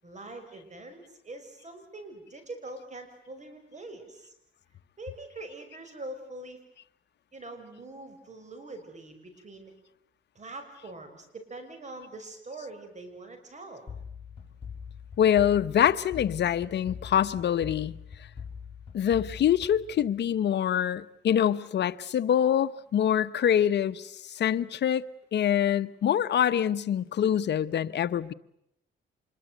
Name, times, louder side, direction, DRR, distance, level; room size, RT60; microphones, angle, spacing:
voice 1, 0.0-4.3 5.0-6.6 7.3-9.7 10.3-13.9, right 2 dB, 35° right, 6.5 m, -43 dB
sound 1, 13.9-20.5, left 6 dB, 25° left, 6.3 m, -43 dB
voice 2, 15.2-18.3 18.9-25.0 25.3-28.3, left 9 dB, 60° left, 1.0 m, -25 dB
26.5 x 22.5 x 8.1 m
cardioid pair, 90°, 20 cm